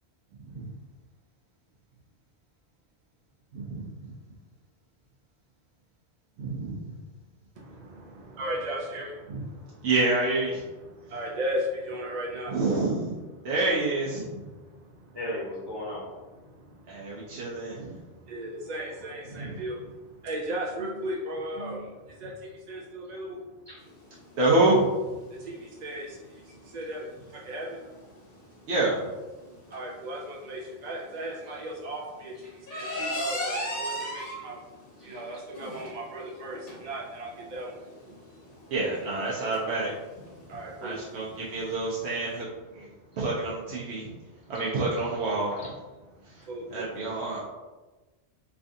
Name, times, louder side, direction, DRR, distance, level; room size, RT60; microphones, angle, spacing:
voice 1, 3.5-4.1 6.4-7.0 9.3-9.4 9.8-10.6 12.5-13.2 13.4-14.4 16.9-18.0 19.3-19.6 24.4-24.8 28.7-29.1 38.7-39.9 40.8-42.5 42.7-42.9 43.2-44.1 44.5-45.7 46.3-46.4 46.7-47.4, right 2 dB, 80° right, -7 dB, 0.9 m, -27 dB
voice 2, 7.6-9.9 10.9-12.5 14.7-14.8 16.5-17.4 18.2-20.0 20.2-23.4 25.4-27.0 27.4-27.8 29.7-34.6 35.0-37.8 38.1-38.2 40.5-41.0 46.5-46.9, right 1 dB, 55° right, -3 dB, 0.5 m, -36 dB
voice 3, 15.1-16.1 19.0-19.4 23.7-23.8 31.5-31.6 32.4-32.5 35.0-35.4 36.5-36.6 45.5-45.7, left 1 dB, 25° right, -8 dB, 1.2 m, -38 dB
sound 1, 23.8-42.4, equal, 60° left, 1.0 m, -40 dB
3.3 x 2.5 x 2.6 m, 1.2 s
omnidirectional pair, 1.1 m